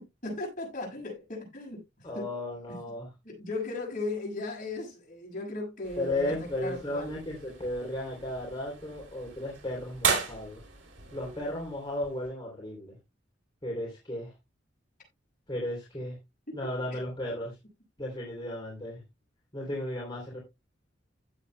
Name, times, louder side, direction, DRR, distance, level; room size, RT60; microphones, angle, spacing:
voice 1, 0.0-2.3 2.7-2.8 3.2-7.1 16.9-17.0, left 2 dB, 45° left, 6.8 m, -37 dB
voice 2, 2.0-3.1 6.0-10.6 11.1-13.0 13.6-14.3 15.5-16.1 16.5-17.5 18.0-19.0 19.5-20.4, left 1 dB, 25° left, 3.1 m, -35 dB
sound 1, 5.8-12.3, right 6 dB, 85° right, 3.4 m, -36 dB
15.5 x 7.5 x 2.2 m
head